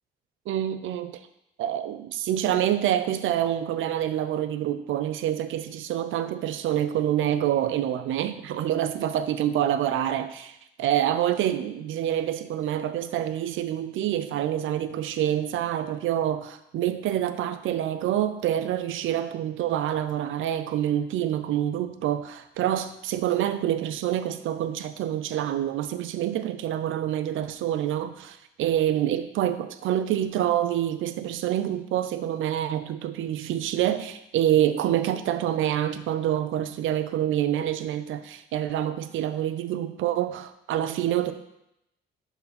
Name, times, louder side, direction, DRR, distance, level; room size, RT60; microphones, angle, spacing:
voice 1, 0.5-1.2 1.6-41.3, right 11 dB, 80° right, 11 dB, 0.6 m, -27 dB
12.0 x 4.1 x 4.3 m, 0.82 s
cardioid pair, 90°, 20 cm